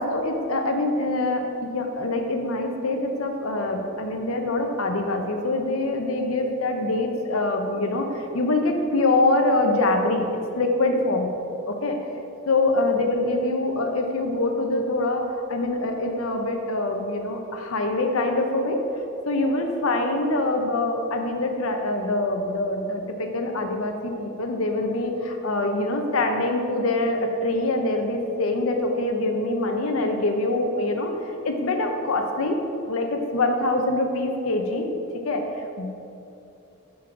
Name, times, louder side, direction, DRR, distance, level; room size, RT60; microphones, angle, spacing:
voice 1, 0.0-11.3 11.7-12.0 12.5-18.8 19.3-32.6 32.9-34.9 35.2-35.9, left 2 dB, 75° left, 4 dB, 0.8 m, -24 dB
6.0 x 5.5 x 4.9 m, 2.8 s
head